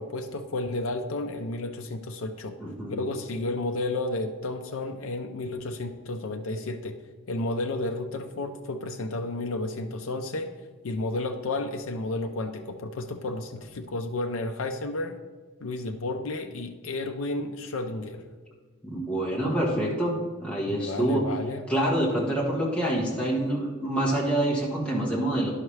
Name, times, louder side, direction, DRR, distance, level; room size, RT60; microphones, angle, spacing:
voice 1, 0.0-2.6 2.9-7.0 7.3-10.5 10.8-15.2 15.6-18.2 20.7-21.7, left 2 dB, 80° left, 5 dB, 0.5 m, -32 dB
voice 2, 2.6-3.0 18.8-21.2 21.7-25.5, right 1 dB, 5° left, -5 dB, 1.5 m, -26 dB
10.5 x 5.6 x 3.2 m, 1.4 s
head